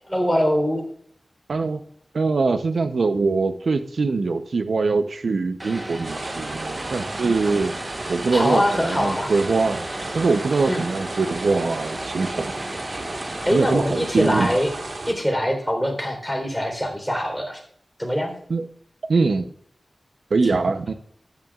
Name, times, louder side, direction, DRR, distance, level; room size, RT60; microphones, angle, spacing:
voice 1, 0.1-0.8 8.3-9.3 10.7-10.8 13.4-14.7 15.1-17.6 18.0-18.3, equal, ahead, 1 dB, 3.7 m, -23 dB
voice 2, 1.5-1.8 2.1-7.7 8.1-9.8 10.1-12.5 13.5-14.6 18.5-18.6 19.1-19.5 20.3-20.9, right 4 dB, 85° right, 9 dB, 0.7 m, -22 dB
Vehicle, 5.6-13.5, right 1 dB, 25° right, 1.1 m, -34 dB
sound 1, 6.0-15.1, right 2 dB, 60° right, 1.7 m, -34 dB
14.5 x 10.5 x 2.4 m, 0.66 s
wide cardioid pair, 75°, 0 cm